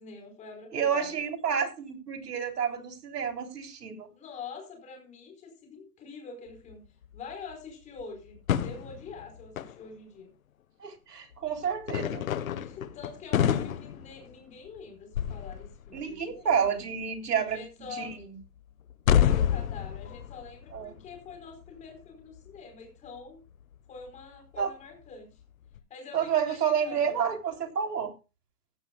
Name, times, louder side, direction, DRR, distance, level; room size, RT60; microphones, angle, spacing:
voice 1, 0.0-1.2 4.2-6.8 7.1-10.3 12.5-16.6 17.4-18.1 18.9-23.4 23.9-25.4 25.9-27.3, left 5 dB, 15° left, 3 dB, 4.6 m, -45 dB
voice 2, 0.7-4.1 10.8-12.3 15.9-17.6 18.0-18.1 20.7-21.0 24.6-24.7 26.1-28.1, right 7 dB, 80° right, 5 dB, 3.7 m, -29 dB
sound 1, 6.7-6.8 7.0-7.5 8.0-9.8 11.3-11.4 11.8-14.8 15.1-16.2 16.5-16.8 18.1-18.5 18.9-21.8 22.3-22.5 23.2-23.3 23.7-23.8 24.0-24.1 24.5-24.6 25.7-25.8, left 9 dB, 60° left, 1.3 m, -29 dB
16.0 x 14.0 x 2.3 m, 0.30 s
hypercardioid pair, 160°, 47 cm